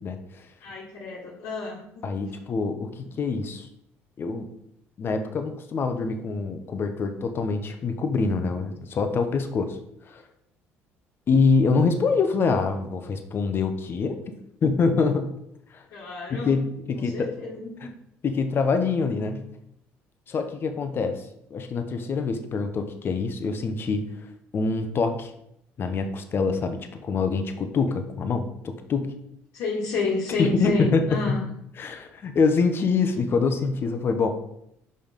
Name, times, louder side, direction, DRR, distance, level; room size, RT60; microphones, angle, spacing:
voice 1, 0.0-0.5 2.0-3.7 4.2-4.5 5.0-9.8 10.1-10.2 11.3-14.3 14.6-15.3 15.7-15.8 16.3-17.3 17.8-17.9 18.2-19.5 20.3-21.2 21.5-24.1 24.5-25.3 25.8-29.1 30.4-31.4 31.8-34.3, left 4 dB, 45° left, 7 dB, 1.0 m, -25 dB
voice 2, 0.6-2.1 15.9-16.6 16.9-17.8 29.5-31.4, left 3 dB, 75° left, -6 dB, 1.7 m, -30 dB
5.5 x 5.4 x 5.2 m, 0.77 s
supercardioid pair, 90°, 5 cm